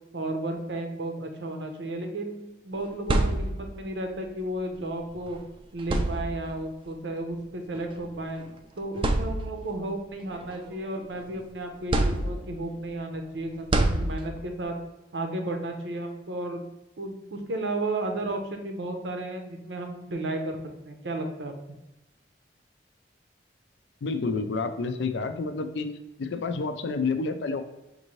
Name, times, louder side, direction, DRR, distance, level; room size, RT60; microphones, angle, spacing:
voice 1, 0.1-5.4 5.7-8.5 8.8-14.8 15.1-16.7 17.0-20.6 20.9-21.5, right 1 dB, 85° right, 4 dB, 0.7 m, -33 dB
sound 1, 2.8-3.9 5.2-5.3 5.8-6.7 7.8-7.9 8.5-8.6 9.0-9.8 10.3-11.3 11.9-12.7 13.7-14.6, right 2 dB, 30° right, 0.3 m, -27 dB
voice 2, 24.0-25.9 26.2-27.6, left 4 dB, 80° left, 9 dB, 0.4 m, -29 dB
5.3 x 2.6 x 3.1 m, 1.0 s
head